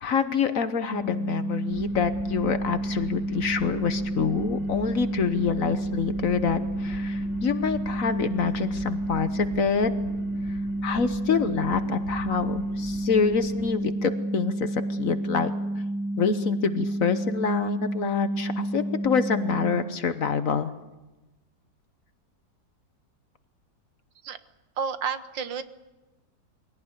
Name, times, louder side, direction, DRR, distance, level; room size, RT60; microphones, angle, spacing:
voice 1, 0.0-9.9 10.5-15.5 16.2-20.7, left 6 dB, 55° left, 11 dB, 1.3 m, -26 dB
sound 1, 0.9-19.7, right 1 dB, 80° left, 3.0 m, -30 dB
sound 2, 1.7-13.7, left 1 dB, 30° left, 3.2 m, -42 dB
voice 2, 24.8-25.6, right 6 dB, 85° right, 12 dB, 1.8 m, -30 dB
23.0 x 17.5 x 9.7 m, 1.1 s
omnidirectional pair, 1.9 m